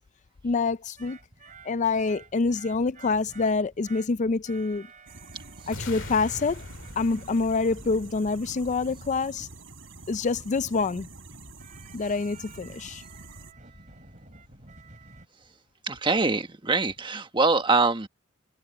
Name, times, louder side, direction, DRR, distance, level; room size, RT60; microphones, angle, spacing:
voice 1, 0.4-1.2 1.6-4.9 5.7-6.6 7.0-9.5 10.1-11.1 11.9-13.0, left 4 dB, 40° left, 0.4 m, -26 dB
sound 1, 0.7-15.3, right 3 dB, 40° right, 4.0 m, -51 dB
sound 2, 5.1-13.5, right 3 dB, 70° right, 5.2 m, -47 dB
sound 3, 5.7-9.7, left 2 dB, 70° left, 2.1 m, -43 dB
voice 2, 15.8-18.1, right 3 dB, 25° right, 1.3 m, -24 dB
head